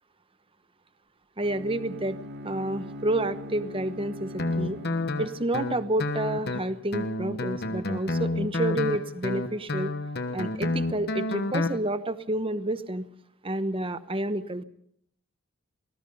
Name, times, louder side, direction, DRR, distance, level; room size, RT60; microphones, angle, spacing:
voice 1, 1.4-2.2 2.4-4.8 5.2-9.9 10.3-13.1 13.4-14.6, right 1 dB, 25° right, 12 dB, 1.0 m, -29 dB
Bowed string instrument, 1.4-5.6, equal, 50° right, 2.8 m, -41 dB
Guitar, 4.4-11.8, left 2 dB, 50° left, 1.3 m, -30 dB
24.5 x 19.5 x 5.5 m, 0.68 s
head